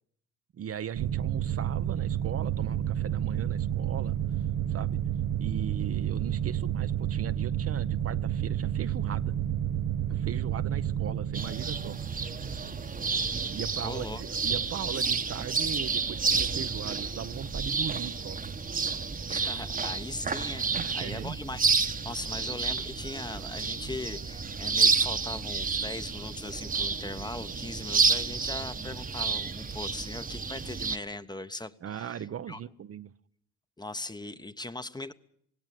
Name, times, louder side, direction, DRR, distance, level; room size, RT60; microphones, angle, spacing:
voice 1, 0.5-4.2 4.7-5.0 5.4-9.3 10.1-12.0 13.5-18.5 20.7-21.4 31.8-33.1, right 9 dB, 50° right, 12 dB, 0.8 m, -38 dB
sound 1, 1.0-14.2, right 10 dB, 75° right, 1.0 m, -30 dB
sound 2, 11.3-31.0, right 4 dB, 25° right, 1.2 m, -30 dB
voice 2, 13.8-14.2 19.3-32.6 33.8-35.1, left 2 dB, 15° left, 11 dB, 1.1 m, -39 dB
18.5 x 17.0 x 9.3 m, 0.68 s
cardioid pair, 80°, 31 cm